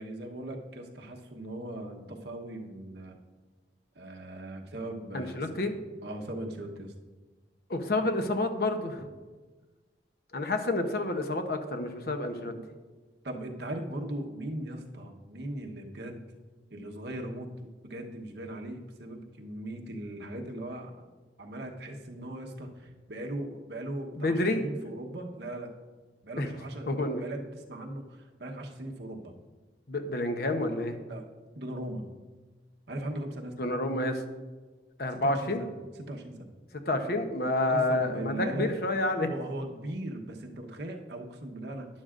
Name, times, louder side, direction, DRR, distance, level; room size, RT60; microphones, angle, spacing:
voice 1, 0.0-3.2 3.9-5.7 6.0-6.9 12.5-12.6 13.2-16.2 16.7-21.1 21.4-25.7 26.2-29.3 31.1-31.3 31.5-32.0 32.9-33.7 35.1-35.7 36.1-36.5 37.7-38.7 39.1-41.9, right 1 dB, 75° right, 2 dB, 1.1 m, -39 dB
voice 2, 5.1-5.7 7.7-9.1 10.3-12.5 24.2-24.6 26.4-26.5 26.9-27.2 29.9-30.9 33.6-34.2 35.0-35.6 36.9-39.3, left 2 dB, 60° left, 6 dB, 0.9 m, -29 dB
11.5 x 10.5 x 2.5 m, 1.3 s
head